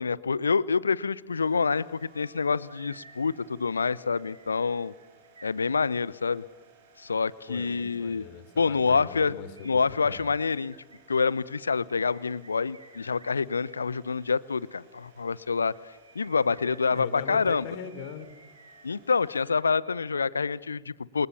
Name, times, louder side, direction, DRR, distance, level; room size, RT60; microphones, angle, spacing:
voice 1, 0.0-4.9 5.4-6.4 7.0-8.3 8.6-9.3 9.6-10.7 11.1-15.7 16.1-17.7 18.8-21.3, left 5 dB, 75° left, 20 dB, 0.9 m, -27 dB
sound 1, 1.1-1.2 1.5-6.3 9.5-13.8 15.6-20.2 20.5-20.6, right 3 dB, 80° right, 3.9 m, -55 dB
sound 2, 1.3-19.5, right 3 dB, 55° right, 7.4 m, -60 dB
voice 2, 7.5-10.3 16.6-18.3, left 7 dB, 50° left, 12 dB, 3.7 m, -41 dB
29.0 x 28.0 x 7.2 m, 1.1 s
figure-of-eight pair, 90°, 0 cm